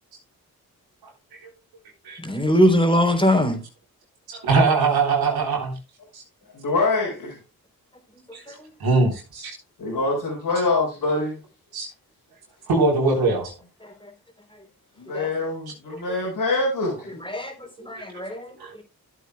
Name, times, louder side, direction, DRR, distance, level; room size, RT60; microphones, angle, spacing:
voice 1, 2.2-3.6 15.1-15.3 17.3-17.5 17.8-18.5, equal, 15° left, 3.4 m, -20 dB
voice 2, 4.3-5.7 6.1-6.2 8.3-9.6 11.7-11.9 12.7-13.5 18.0-18.2 18.6-18.8, right 3 dB, 80° right, 3.7 m, -22 dB
voice 3, 6.5-7.4 9.8-11.4 15.0-17.2, left 3 dB, 70° left, 4.7 m, -24 dB
13.5 x 8.3 x 2.3 m
supercardioid pair, 45°, 37 cm